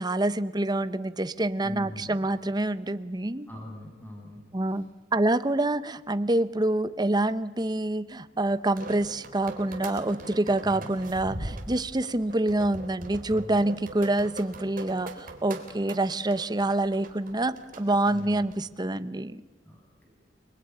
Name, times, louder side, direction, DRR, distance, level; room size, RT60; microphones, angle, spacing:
voice 1, 0.0-3.5 4.5-4.8 5.1-19.4, right 2 dB, 20° right, 13 dB, 0.8 m, -27 dB
voice 2, 1.6-2.2 3.5-4.4 4.7-4.8 10.6-10.9 13.3-13.6 18.0-18.4 19.6-20.1, left 1 dB, 10° left, -1 dB, 7.5 m, -42 dB
sound 1, 8.5-18.6, right 1 dB, 50° right, 3.7 m, -41 dB
29.0 x 21.0 x 9.8 m, 1.2 s
head